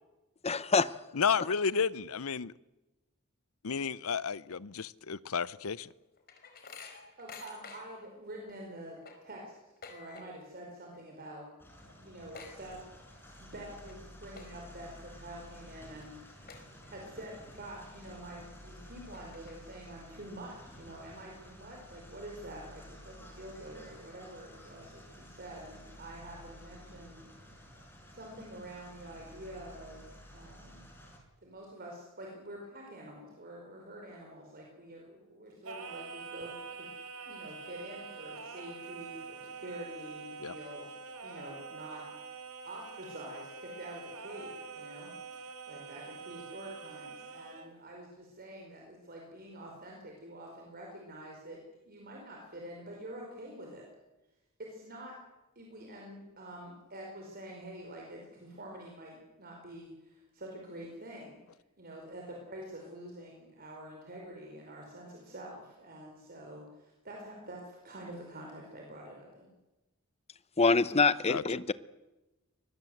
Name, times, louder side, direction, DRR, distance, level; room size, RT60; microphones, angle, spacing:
voice 1, 0.4-0.9 70.6-71.7, left 4 dB, 30° left, 0.8 m, -25 dB
voice 2, 1.1-2.5 3.6-5.9 40.4-40.6 71.3-71.4, left 6 dB, 70° left, 0.7 m, -32 dB
sound 1, 5.6-8.1 8.5-8.6 8.9-10.6 10.8-11.2 11.5-11.6 11.9-13.3 13.7-13.9 14.3-14.8 15.3-15.4 16.0-16.1 16.5-17.2 17.6-17.7 18.5-18.6 19.0-19.9, left 5 dB, 45° left, 4.8 m, -50 dB
voice 3, 7.2-11.4 12.0-12.8 13.4-27.7 28.1-30.8 31.4-40.9 41.2-42.0 42.6-53.9 54.7-55.1 55.5-61.4 61.8-69.5, right 1 dB, 45° right, 5.0 m, -47 dB
sound 2, 11.6-31.2, equal, 10° left, 5.9 m, -52 dB
Singing, 35.6-47.7, right 5 dB, 80° right, 3.7 m, -45 dB
24.5 x 21.0 x 7.9 m
head